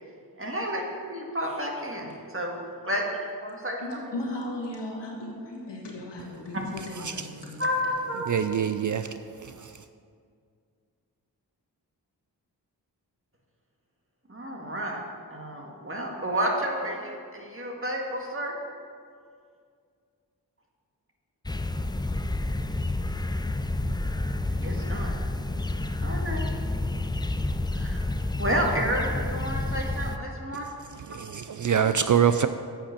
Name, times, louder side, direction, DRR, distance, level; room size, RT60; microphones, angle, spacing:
voice 1, 0.4-0.8 1.1-2.6 2.8-3.1 3.4-4.1 4.4-4.5 7.6-8.3 14.3-15.0 15.3-18.5 24.5-25.1 26.0-26.5 27.7-28.1 28.4-30.7, equal, 30° right, 0 dB, 1.9 m, -30 dB
voice 2, 3.8-7.7, left 1 dB, 75° left, -2 dB, 1.9 m, -36 dB
voice 3, 8.3-9.8 31.1-32.5, right 8 dB, 50° right, 10 dB, 0.4 m, -25 dB
sound 1, 21.5-30.2, left 2 dB, 10° left, 0.5 m, -29 dB
8.5 x 5.9 x 6.6 m, 2.2 s
cardioid pair, 40°, 42 cm